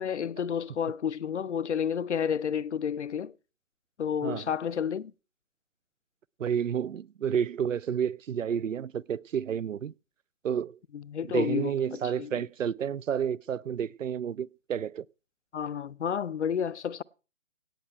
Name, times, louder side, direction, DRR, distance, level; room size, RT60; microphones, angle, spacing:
voice 1, 0.0-3.3 4.0-5.1 10.9-12.3 15.5-17.0, left 8 dB, 65° left, 0.6 m, -31 dB
voice 2, 6.4-9.9 10.4-10.8 11.3-15.0, right 8 dB, 85° right, 0.5 m, -30 dB
17.0 x 8.8 x 4.5 m
figure-of-eight pair, 150°, 37 cm